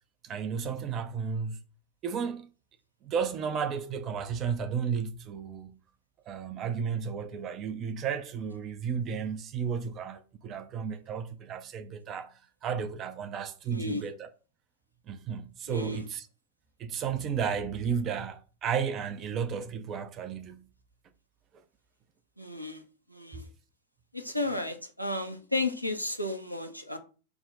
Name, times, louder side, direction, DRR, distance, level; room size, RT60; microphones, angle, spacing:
voice 1, 0.2-1.6 2.0-2.5 3.0-5.8 6.3-14.3 15.1-16.3 16.8-20.6 23.3-23.4, right 6 dB, 30° right, 0.5 m, -33 dB
voice 2, 13.7-14.0 15.7-16.0 22.4-22.8 23.1-23.5 24.1-27.0, left 2 dB, 90° right, 0.6 m, -33 dB
5.8 x 2.1 x 3.9 m
figure-of-eight pair, 90°, 0 cm